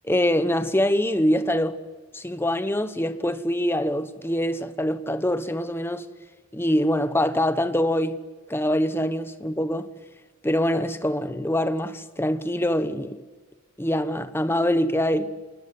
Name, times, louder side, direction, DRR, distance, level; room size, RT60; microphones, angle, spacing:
voice 1, 0.1-1.8 2.1-6.1 6.5-8.2 8.5-9.9 10.4-13.2 13.8-15.3, left 1 dB, 10° left, 1.1 m, -24 dB
27.5 x 20.0 x 9.6 m
head